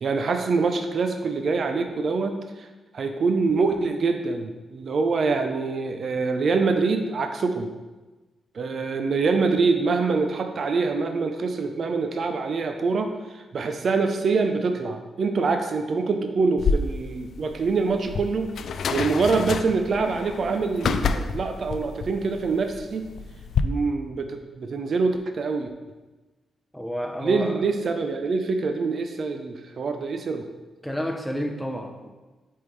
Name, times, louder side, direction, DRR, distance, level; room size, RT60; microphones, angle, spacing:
voice 1, 0.0-2.7 2.9-7.7 8.5-18.5 18.9-23.1 23.6-25.7 27.2-30.5, right 4 dB, 60° right, 6 dB, 0.5 m, -25 dB
sound 1, 16.6-23.6, left 5 dB, 70° left, 0.3 m, -29 dB
voice 2, 26.7-27.6 30.8-32.1, equal, ahead, 1 dB, 0.6 m, -30 dB
8.5 x 3.6 x 3.2 m, 1.2 s
cardioid pair, 65°, 0 cm